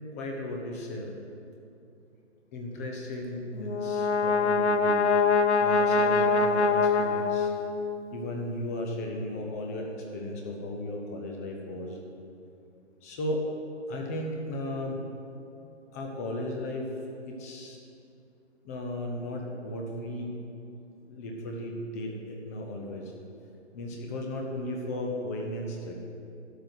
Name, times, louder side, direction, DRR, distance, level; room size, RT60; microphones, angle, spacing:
voice 1, 0.1-1.1 2.5-5.0 5.6-7.5 8.1-12.0 13.0-13.5 13.9-15.0 15.9-16.9 17.2-17.8 18.6-20.3 21.1-23.1 23.7-25.9, left 1 dB, 15° left, 1 dB, 0.7 m, -35 dB
Brass instrument, 3.6-8.0, left 4 dB, 70° left, 0.9 m, -24 dB
11.5 x 6.3 x 7.9 m, 2.6 s
hypercardioid pair, 150°, 36 cm